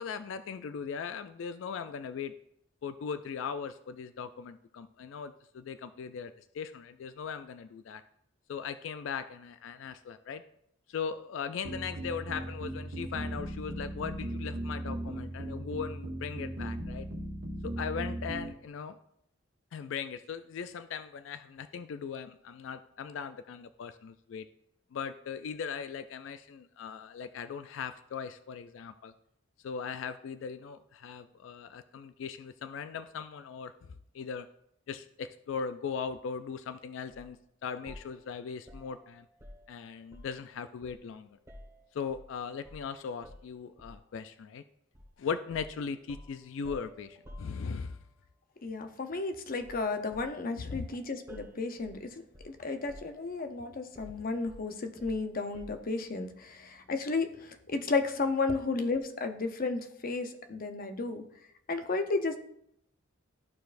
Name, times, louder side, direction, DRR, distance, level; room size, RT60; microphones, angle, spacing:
voice 1, 0.0-2.3 2.8-8.0 8.5-10.4 10.9-17.1 17.6-19.0 19.7-24.5 24.9-29.1 29.6-33.7 34.1-34.5 34.9-37.4 37.6-39.2 39.7-41.4 41.9-44.6 45.2-48.0 50.6-50.9 54.1-54.2, left 6 dB, 70° left, 11 dB, 0.3 m, -39 dB
sound 1, 11.6-18.5, right 1 dB, 70° right, 1.2 m, -37 dB
sound 2, 37.1-37.3 37.9-40.5 40.8-42.3 42.6-42.9 43.2-44.1 44.9-45.1 45.5-48.1 49.6-49.9 50.1-52.6 52.9-53.5 53.9-55.9, left 1 dB, 15° right, 1.3 m, -52 dB
voice 2, 48.6-61.2 61.7-62.4, left 3 dB, 45° left, 7 dB, 0.7 m, -33 dB
13.5 x 4.6 x 2.5 m, 0.74 s
head